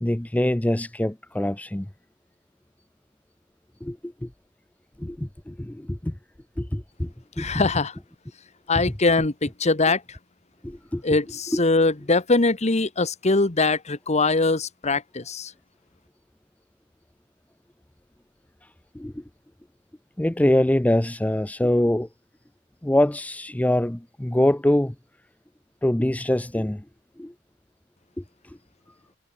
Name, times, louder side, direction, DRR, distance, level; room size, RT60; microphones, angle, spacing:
voice 1, 0.0-1.9 3.8-4.3 5.0-6.2 6.6-7.5 8.7-8.8 10.6-11.0 11.5-11.6 18.9-19.2 20.2-22.1 22.8-25.0 25.8-26.8 27.2-27.3 28.2-28.6, left 1 dB, 5° left, 0.5 m, -24 dB
voice 2, 7.4-7.9 8.7-10.0 11.0-15.5, left 3 dB, 35° left, 1.3 m, -22 dB
head